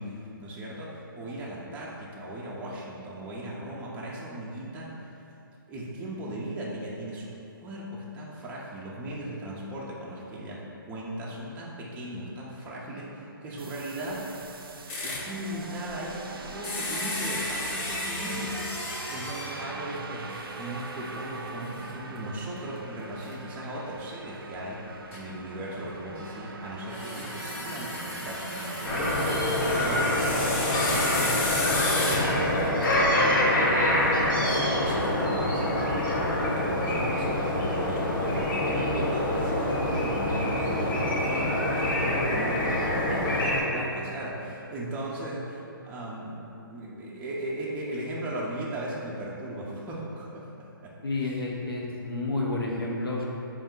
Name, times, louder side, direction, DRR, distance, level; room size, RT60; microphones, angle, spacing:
voice 1, 0.0-5.2 5.7-14.4 15.0-20.3 20.5-31.4 31.8-33.5 34.4-50.9 51.2-51.3, right 1 dB, 10° right, -5 dB, 0.4 m, -37 dB
sound 1, 13.6-31.8, right 3 dB, 80° right, 0.4 m, -40 dB
sound 2, 14.9-15.3 16.6-19.7 20.3-20.4 20.9-21.0 23.2-23.3 25.1-25.2 26.9-33.1, left 2 dB, 35° left, 0.6 m, -33 dB
sound 3, 28.8-43.6, left 1 dB, 65° left, 1.2 m, -26 dB
voice 2, 51.0-53.2, left 2 dB, 90° left, -3 dB, 0.8 m, -30 dB
4.2 x 2.4 x 3.7 m, 2.8 s
hypercardioid pair, 140°, 12 cm